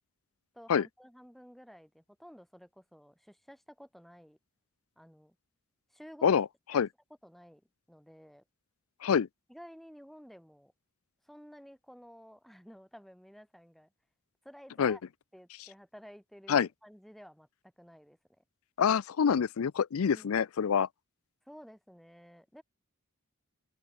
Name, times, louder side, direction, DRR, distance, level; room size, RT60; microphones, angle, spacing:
voice 1, 0.5-4.4 5.0-5.4 5.9-6.4 6.7-6.8 7.2-7.6 7.9-8.4 9.5-10.7 11.2-13.9 14.4-15.0 15.3-18.4 20.1-20.4 21.4-22.6, equal, ahead, 6.3 m, -53 dB
voice 2, 18.8-20.9, left 7 dB, 75° left, 0.4 m, -26 dB
open air
head